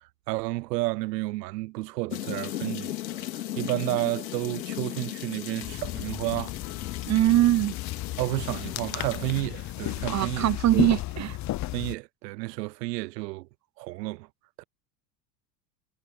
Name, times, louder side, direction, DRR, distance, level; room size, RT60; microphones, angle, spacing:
voice 1, 0.3-3.3 3.6-6.5 8.2-10.9 11.7-13.5 13.8-14.3 14.6-14.7, right 21 dB, 75° right, 0.8 m, -31 dB
sound 1, 2.1-9.4, left 13 dB, 85° left, 2.8 m, -37 dB
sound 2, 5.6-12.0, left 16 dB, 35° left, 0.8 m, -34 dB
voice 2, 7.1-7.8 10.1-11.4, right 15 dB, 35° right, 0.9 m, -22 dB
hypercardioid pair, 90°, 50 cm